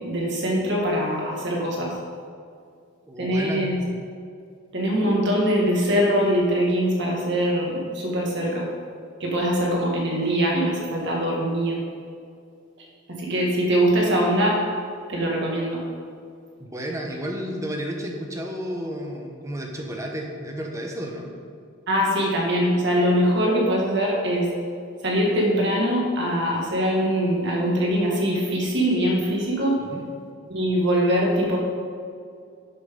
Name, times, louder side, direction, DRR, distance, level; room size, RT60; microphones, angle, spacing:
voice 1, 0.0-1.9 3.2-3.8 4.7-8.7 9.2-11.8 13.1-14.6 15.1-15.8 21.9-24.5 25.0-29.8 30.5-31.6, equal, 60° right, -2 dB, 2.1 m, -22 dB
voice 2, 3.1-3.8 16.6-21.3 29.9-30.1, equal, 15° right, 1 dB, 1.1 m, -32 dB
11.0 x 7.7 x 3.9 m, 2.3 s
head